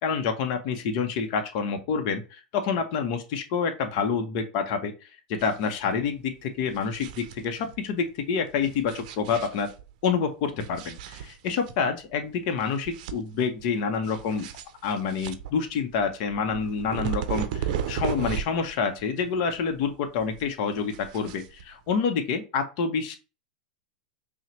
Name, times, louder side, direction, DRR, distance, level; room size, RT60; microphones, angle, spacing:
voice 1, 0.0-9.7 10.0-14.5 14.8-23.2, left 6 dB, 60° left, 6 dB, 0.8 m, -28 dB
sound 1, 5.4-5.8 6.0-6.1 6.6-7.8 8.6-9.9 10.6-11.8 12.1-12.2 12.6-13.6 14.0-18.7 19.0-20.0 20.2-21.9, right 9 dB, 65° right, 0.5 m, -35 dB
5.5 x 2.2 x 3.1 m, 0.31 s
hypercardioid pair, 100°, 5 cm